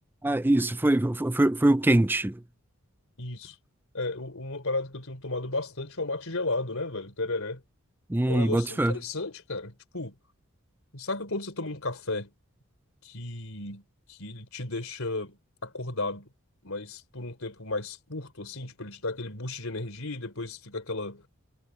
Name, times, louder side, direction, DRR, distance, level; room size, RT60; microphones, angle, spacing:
voice 1, 0.2-2.4 8.1-9.0, right 1 dB, 10° right, 0.4 m, -23 dB
voice 2, 3.2-3.6 3.9-7.6 8.3-10.2 10.9-12.3 13.0-13.8 14.1-15.4 15.6-16.3 16.6-21.2, left 2 dB, 70° left, 3.5 m, -34 dB
head